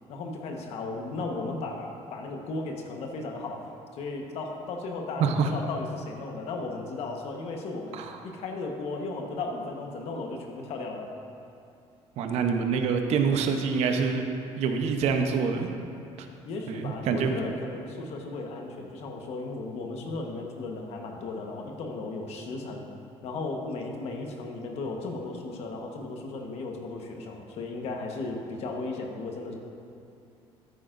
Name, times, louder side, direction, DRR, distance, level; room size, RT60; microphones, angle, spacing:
voice 1, 0.1-3.7 3.9-11.1 16.4-22.9 23.2-29.5, left 3 dB, 65° left, 2 dB, 1.3 m, -35 dB
voice 2, 5.2-5.5 7.9-8.1 12.2-14.2 14.6-15.7 16.2-16.3 16.7-17.3, right 6 dB, 70° right, 5 dB, 0.9 m, -26 dB
13.0 x 9.0 x 2.6 m, 2.6 s
cardioid pair, 125°, 11 cm